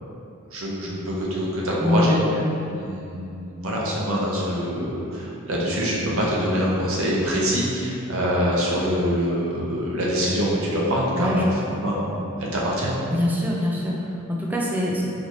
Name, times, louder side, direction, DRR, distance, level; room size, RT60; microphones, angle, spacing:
voice 1, 0.5-2.2 2.7-11.5 11.8-12.1 12.4-12.9, equal, 65° right, -5 dB, 0.8 m, -24 dB
voice 2, 1.8-2.3 11.2-11.4 11.7-11.8 13.1-15.0, left 1 dB, 10° right, -3 dB, 0.4 m, -24 dB
4.0 x 2.7 x 3.0 m, 2.7 s
head